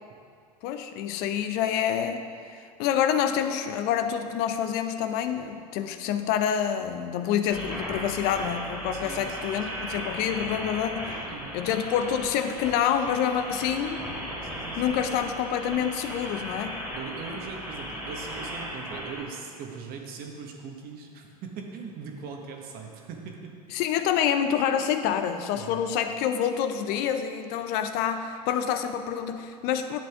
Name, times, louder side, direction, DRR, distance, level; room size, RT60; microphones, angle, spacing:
voice 1, 0.6-2.2 2.5-11.3 11.5-14.0 14.8-16.8 23.7-30.0, left 9 dB, 50° left, 8 dB, 0.6 m, -27 dB
sound 1, 7.5-19.2, equal, 5° right, 2.5 m, -36 dB
voice 2, 8.9-9.8 11.3-11.6 14.4-14.9 16.2-16.3 17.0-23.5 23.8-23.9 25.5-25.8, right 5 dB, 45° right, 2 dB, 1.4 m, -41 dB
10.5 x 7.3 x 3.6 m, 2.2 s
hypercardioid pair, 90°, 21 cm